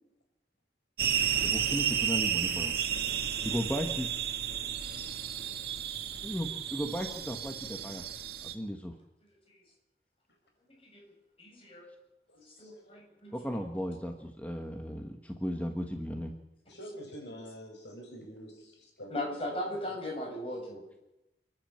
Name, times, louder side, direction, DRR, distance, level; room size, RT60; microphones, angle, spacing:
sound 1, 1.0-8.5, right 8 dB, 60° right, 2.1 m, -32 dB
voice 1, 1.4-2.7 3.4-4.1 6.2-8.0 8.4-8.9 13.3-16.3, equal, 10° left, 4 dB, 1.3 m, -35 dB
voice 2, 10.7-11.0 11.4-11.9 12.3-13.6 19.1-20.8, left 1 dB, 30° left, 0 dB, 7.8 m, -38 dB
voice 3, 12.3-13.0 16.7-19.5, equal, 80° left, 3 dB, 6.5 m, -47 dB
29.0 x 10.5 x 8.6 m, 0.91 s
head